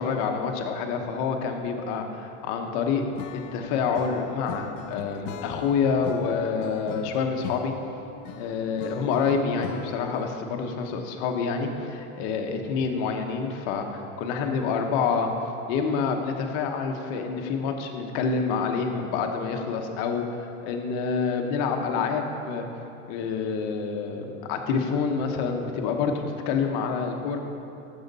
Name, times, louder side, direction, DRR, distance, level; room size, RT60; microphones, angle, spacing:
voice 1, 0.0-3.0 3.5-7.7 8.4-15.3 15.7-22.6 23.1-27.4, left 5 dB, 40° left, 4 dB, 0.8 m, -27 dB
Acoustic guitar / Strum, 3.2-10.4, left 10 dB, 80° left, 0.5 m, -40 dB
12.0 x 7.2 x 4.0 m, 2.8 s
supercardioid pair, 175°, 38 cm